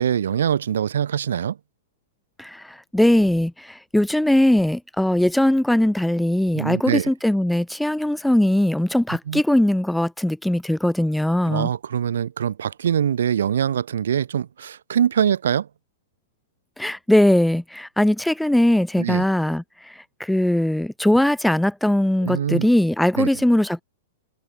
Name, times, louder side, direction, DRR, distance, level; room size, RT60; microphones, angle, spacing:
voice 1, 0.0-1.6 6.5-7.1 9.3-9.4 11.5-15.7 19.0-19.2 22.2-22.7 23.2-23.3, right 9 dB, 80° right, 3.7 m, -23 dB
voice 2, 2.9-11.7 16.8-19.6 20.2-23.8, left 1 dB, ahead, 1.1 m, -20 dB
hypercardioid pair, 135°, 0 cm